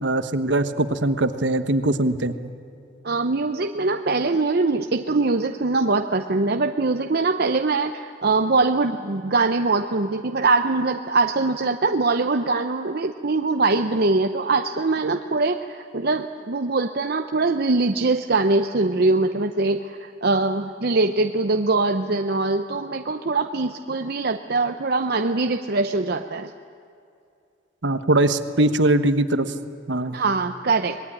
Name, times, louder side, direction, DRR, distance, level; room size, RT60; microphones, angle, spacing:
voice 1, 0.0-2.3 27.8-29.5 29.9-30.1, right 2 dB, 70° right, 10 dB, 1.3 m, -21 dB
voice 2, 3.0-26.5 30.1-31.0, right 3 dB, 55° right, 6 dB, 0.7 m, -22 dB
25.5 x 20.5 x 10.0 m, 2.4 s
head